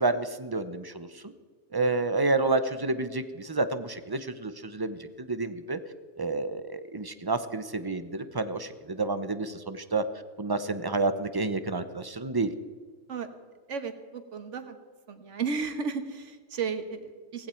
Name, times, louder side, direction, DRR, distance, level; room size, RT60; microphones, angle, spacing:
voice 1, 0.0-1.3 1.7-5.8 6.2-10.0 10.4-12.5, right 3 dB, 25° right, 11 dB, 0.7 m, -29 dB
voice 2, 13.7-14.8 15.1-17.5, right 5 dB, 80° right, 8 dB, 1.6 m, -34 dB
18.0 x 15.5 x 4.5 m, 1.5 s
omnidirectional pair, 1.2 m